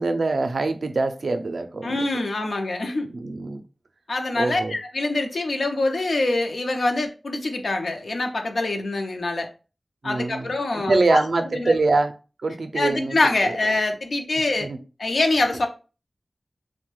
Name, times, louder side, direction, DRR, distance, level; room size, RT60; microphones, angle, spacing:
voice 1, 0.0-2.1 3.1-3.6 4.4-4.7 10.0-10.5 10.7-12.1 12.4-13.2 14.6-14.8, right 3 dB, 85° right, 0.4 m, -23 dB
voice 2, 1.8-3.1 4.1-9.5 10.0-11.8 12.7-14.7 15.0-15.7, left 2 dB, 90° left, 0.5 m, -25 dB
2.9 x 2.1 x 3.0 m
wide cardioid pair, 65°, 0 cm